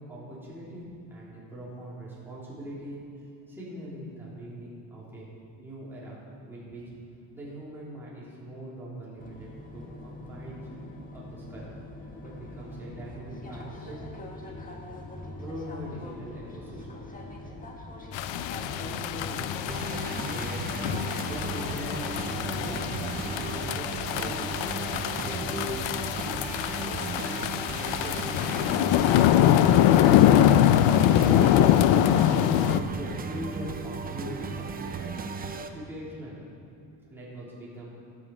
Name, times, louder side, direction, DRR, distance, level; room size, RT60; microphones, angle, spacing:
voice 1, 0.0-3.0 3.5-5.3 5.6-6.2 6.4-6.8 7.3-10.7 11.1-11.7 12.2-14.1 14.4-14.9 15.4-17.0 18.5-19.7 20.1-20.9 21.3-24.3 24.8-25.7 27.2-28.6 29.1-31.8 32.3-35.2 35.5-36.4 37.1-37.9, right 1 dB, 5° right, -9 dB, 3.9 m, -41 dB
sound 1, 9.2-28.5, left 1 dB, 20° left, 1.4 m, -42 dB
sound 2, 18.1-32.8, left 11 dB, 85° left, 0.7 m, -23 dB
sound 3, 19.7-35.7, right 5 dB, 20° right, 0.6 m, -36 dB
16.0 x 11.0 x 4.9 m, 2.6 s
cardioid pair, 160°, 44 cm